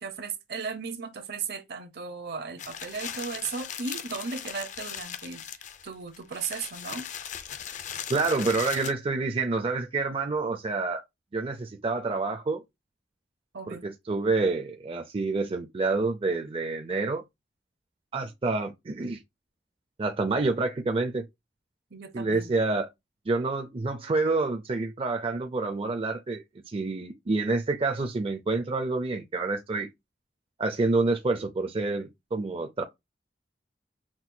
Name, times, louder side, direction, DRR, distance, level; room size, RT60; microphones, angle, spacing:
voice 1, 0.0-5.4 5.8-7.1 13.5-13.9 21.9-22.5, right 5 dB, 65° right, 0.8 m, -36 dB
sound 1, 2.6-8.9, left 9 dB, 45° left, 0.5 m, -38 dB
voice 2, 8.1-11.0 11.3-12.6 13.7-17.2 18.1-19.2 20.0-21.2 22.1-22.9 23.3-29.9 30.6-32.8, right 3 dB, 30° right, 0.5 m, -28 dB
6.0 x 2.3 x 2.7 m
head